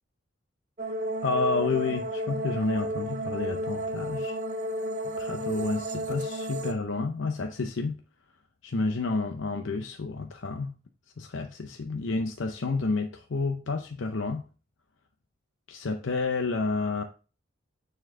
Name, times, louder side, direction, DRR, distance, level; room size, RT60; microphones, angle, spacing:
sound 1, 0.8-6.7, right 1 dB, 40° right, 0.8 m, -32 dB
voice 1, 1.2-4.4 5.2-8.0 8.6-10.7 11.2-14.4 15.7-17.0, left 3 dB, 90° left, 0.7 m, -30 dB
9.1 x 4.4 x 3.6 m
head